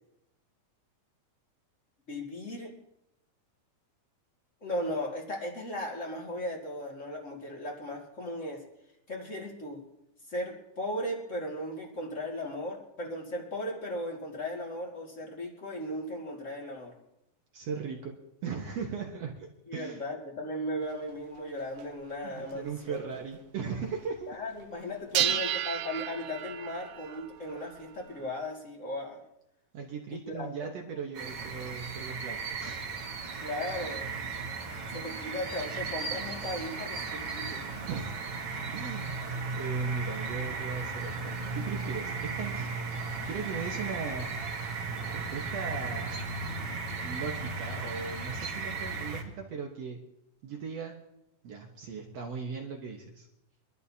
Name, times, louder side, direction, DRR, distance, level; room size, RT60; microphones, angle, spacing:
voice 1, 2.1-2.8 4.6-8.7 9.1-9.8 10.3-16.9 19.7-23.1 24.3-29.2 30.1-31.0 33.4-34.1 34.9-37.7, left 1 dB, 25° left, -1 dB, 1.8 m, -37 dB
voice 2, 17.5-18.1 18.4-20.0 22.2-24.4 25.2-25.5 29.7-32.8 37.9-38.1 38.5-42.7 43.2-44.9 45.1-46.1 47.0-50.0 50.4-51.0 51.4-53.3, right 5 dB, 65° right, 1 dB, 1.6 m, -38 dB
sound 1, 20.8-20.9 21.8-21.9 22.4-22.5 22.9-23.2 25.2-28.3, right 11 dB, 85° right, 2.7 m, -33 dB
sound 2, 31.1-49.2, right 4 dB, 45° right, 2.3 m, -36 dB
25.0 x 12.0 x 2.8 m, 0.85 s
omnidirectional pair, 4.3 m